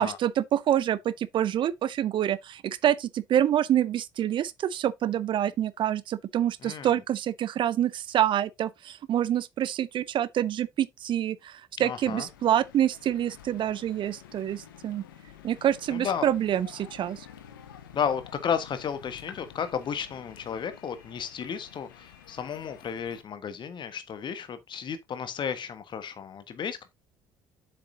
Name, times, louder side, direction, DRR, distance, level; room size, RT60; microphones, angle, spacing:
voice 1, 0.0-15.0 15.4-17.3, right 11 dB, 45° right, 0.5 m, -27 dB
voice 2, 6.6-7.0 11.8-12.3 15.9-16.3 17.9-26.9, left 7 dB, 45° left, 1.4 m, -33 dB
sound 1, 12.0-23.2, left 10 dB, 75° left, 1.2 m, -50 dB
7.4 x 6.8 x 2.8 m
figure-of-eight pair, 55°, 11 cm